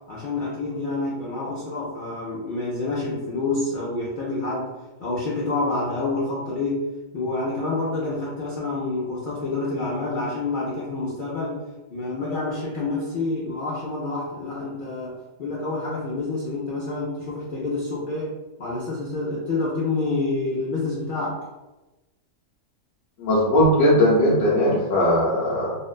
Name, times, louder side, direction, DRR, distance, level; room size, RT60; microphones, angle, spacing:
voice 1, 0.0-4.7 5.0-6.8 7.1-11.6 11.9-18.3 18.6-21.4, left 3 dB, 90° left, -5 dB, 0.4 m, -28 dB
voice 2, 23.2-25.8, equal, 70° left, -7 dB, 1.0 m, -19 dB
2.8 x 2.1 x 2.3 m, 1.1 s
omnidirectional pair, 1.5 m